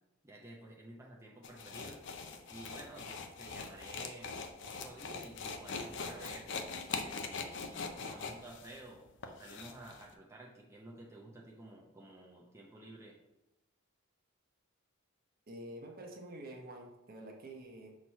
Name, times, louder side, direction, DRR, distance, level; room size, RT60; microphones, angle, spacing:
voice 1, 0.2-2.0 2.5-4.3 4.6-6.5 7.0-13.2, right 1 dB, 15° right, -3 dB, 0.6 m, -52 dB
sound 1, 1.4-10.0, left 5 dB, 55° left, 0.6 m, -42 dB
voice 2, 15.5-18.0, right 1 dB, 45° right, 2 dB, 1.0 m, -48 dB
6.2 x 3.0 x 5.5 m, 0.94 s
head